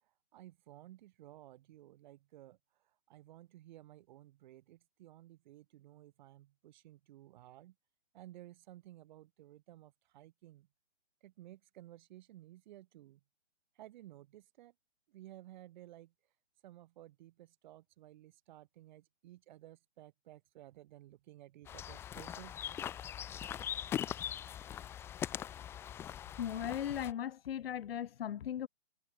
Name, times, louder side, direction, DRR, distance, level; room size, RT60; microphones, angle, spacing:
voice 1, 0.0-2.6 3.1-7.7 8.1-10.7 11.2-13.2 13.7-14.7 15.1-16.1 16.6-22.6, right 14 dB, 40° right, 3.2 m, -56 dB
sound 1, 21.7-27.1, left 10 dB, 5° left, 0.6 m, -41 dB
voice 2, 26.4-28.7, left 10 dB, 50° left, 0.9 m, -37 dB
figure-of-eight pair, 135°, 37 cm